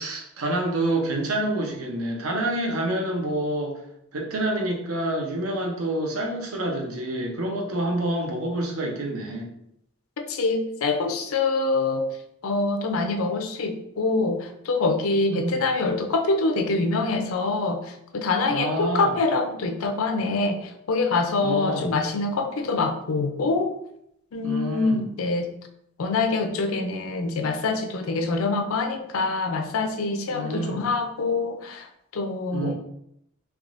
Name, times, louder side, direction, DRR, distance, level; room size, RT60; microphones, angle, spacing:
voice 1, 0.0-3.8 4.1-9.5 15.3-15.6 18.5-19.2 21.4-21.9 24.4-25.1 30.3-30.8 32.5-32.7, right 1 dB, 85° right, 1 dB, 0.8 m, -27 dB
voice 2, 10.3-12.1 12.4-23.7 24.3-25.5 26.0-31.9 32.1-32.7, left 3 dB, 80° left, 6 dB, 0.5 m, -25 dB
3.5 x 2.9 x 2.5 m, 0.76 s
head